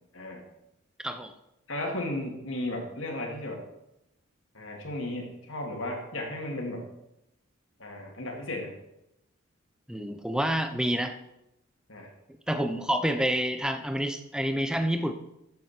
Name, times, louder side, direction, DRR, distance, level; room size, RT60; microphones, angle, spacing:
voice 1, 1.7-3.6 4.5-6.8 7.8-8.7 11.9-12.1, left 1 dB, 70° left, 1 dB, 2.7 m, -34 dB
voice 2, 9.9-11.2 12.5-15.1, equal, 5° right, 8 dB, 0.8 m, -28 dB
14.0 x 8.4 x 4.5 m, 0.86 s
head